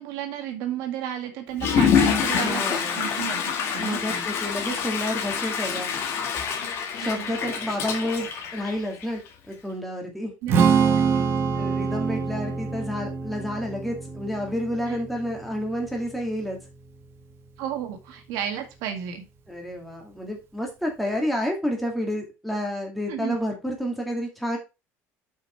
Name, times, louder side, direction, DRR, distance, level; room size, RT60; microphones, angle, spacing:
voice 1, 0.0-2.6 3.0-4.3 6.9-7.3 10.4-10.5 11.2-11.3 14.9-15.0 17.6-19.3 23.1-23.4, right 9 dB, 75° right, 5 dB, 1.9 m, -33 dB
Water / Toilet flush, 1.5-9.3, left 7 dB, 45° left, 1.7 m, -26 dB
voice 2, 2.3-3.0 3.8-5.9 7.0-9.2 9.5-10.3 11.5-16.6 19.5-24.6, equal, ahead, 0 dB, 2.1 m, -30 dB
Strum, 10.5-16.8, right 6 dB, 40° right, 1.2 m, -26 dB
6.1 x 5.7 x 4.4 m, 0.27 s
cardioid pair, 165°, 6 cm